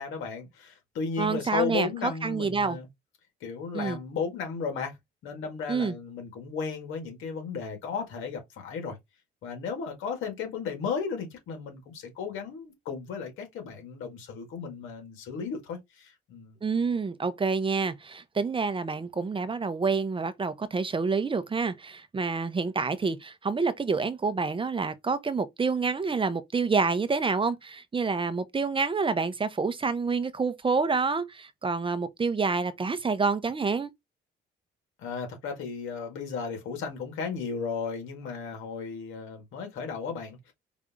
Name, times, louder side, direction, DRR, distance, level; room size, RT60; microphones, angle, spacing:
voice 1, 0.0-2.9 3.4-5.0 5.2-9.0 9.4-16.6 35.0-40.5, left 5 dB, 85° left, 2.0 m, -34 dB
voice 2, 1.2-2.8 3.7-4.0 5.7-6.0 16.6-33.9, right 4 dB, 25° right, 0.7 m, -28 dB
5.0 x 2.7 x 3.5 m
cardioid pair, 90°, 20 cm